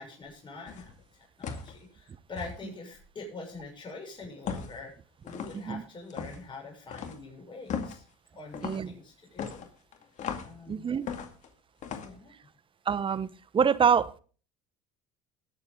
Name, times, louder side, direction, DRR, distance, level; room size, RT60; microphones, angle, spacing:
voice 1, 0.0-4.9 5.2-8.0 8.3-9.7 10.4-10.9 12.0-12.3, left 3 dB, 30° left, 6.7 m, -44 dB
sound 1, 0.7-0.9 1.4-1.8 2.4-2.6 4.5-4.8 5.3-5.6 6.1-6.4 6.9-7.2 7.7-8.0 8.5-8.9 9.4-10.6 11.1-11.5 11.8-12.1, left 6 dB, 50° left, 2.2 m, -37 dB
voice 2, 8.6-8.9 10.7-11.1 12.9-13.3 13.5-14.2, right 7 dB, 30° right, 1.0 m, -25 dB
20.5 x 7.3 x 3.8 m
hypercardioid pair, 80°, 16 cm